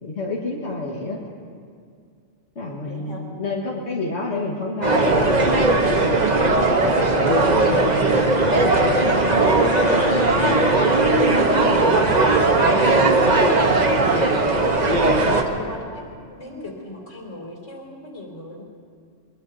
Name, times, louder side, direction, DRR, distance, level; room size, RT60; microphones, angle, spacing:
voice 1, 0.0-1.2 2.6-6.1 6.4-7.8, left 2 dB, 65° left, -4 dB, 2.0 m, -30 dB
voice 2, 2.8-3.2 10.1-10.2 11.5-13.7 14.1-15.1 15.5-16.0 16.3-18.6, left 2 dB, 90° left, -2 dB, 3.3 m, -37 dB
sound 1, 4.8-15.4, right 2 dB, 35° right, 1.2 m, -18 dB
Wind instrument woodwind instrument, 8.1-12.2, left 3 dB, 50° left, 0.8 m, -31 dB
22.5 x 22.0 x 2.8 m, 2.2 s
omnidirectional pair, 1.2 m